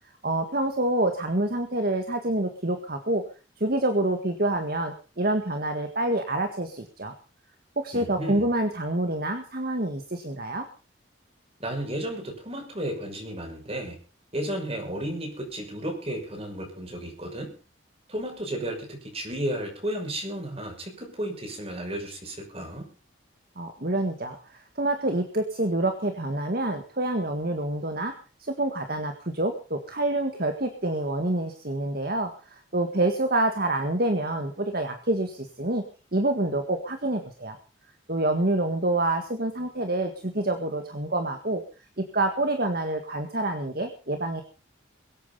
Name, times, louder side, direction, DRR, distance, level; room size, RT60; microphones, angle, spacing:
voice 1, 0.2-3.2 3.6-7.1 7.8-10.7 23.6-28.1 28.4-35.8 36.1-37.6 38.1-41.6 42.0-44.4, right 1 dB, 45° right, 6 dB, 1.8 m, -27 dB
voice 2, 7.9-8.5 11.6-14.0 14.3-17.5 18.1-22.9, right 1 dB, 30° right, 2 dB, 6.3 m, -33 dB
23.0 x 8.8 x 5.6 m, 0.37 s
head